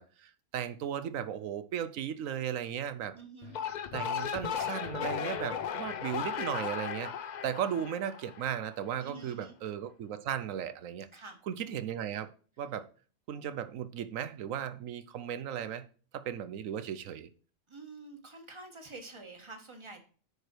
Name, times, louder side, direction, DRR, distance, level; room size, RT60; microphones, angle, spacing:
voice 1, 0.0-3.2 3.9-11.1 11.5-12.3 12.6-12.9 13.3-15.8 16.1-17.3, right 9 dB, 85° right, 1.1 m, -36 dB
voice 2, 3.1-3.6 7.6-7.8 9.0-9.5 11.1-11.4 17.7-20.0, right 3 dB, 20° right, 1.4 m, -48 dB
sound 1, 3.4-8.7, left 8 dB, 60° left, 0.4 m, -36 dB
9.5 x 4.9 x 4.5 m
omnidirectional pair, 1.4 m